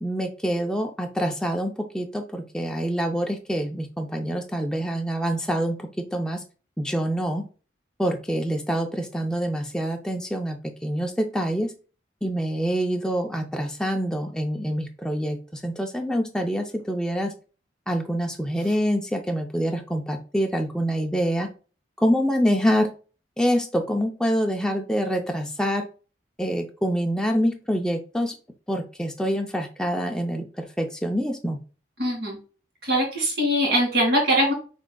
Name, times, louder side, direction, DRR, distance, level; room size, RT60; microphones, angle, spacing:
voice 1, 0.0-6.4 6.8-7.4 8.0-11.7 12.2-17.3 17.9-21.5 22.0-22.9 23.4-25.9 26.4-28.3 28.7-31.6, equal, 5° left, 3 dB, 0.5 m, -26 dB
voice 2, 32.0-32.4 32.8-34.5, equal, 55° right, -1 dB, 2.3 m, -22 dB
6.0 x 3.6 x 2.3 m, 0.36 s
head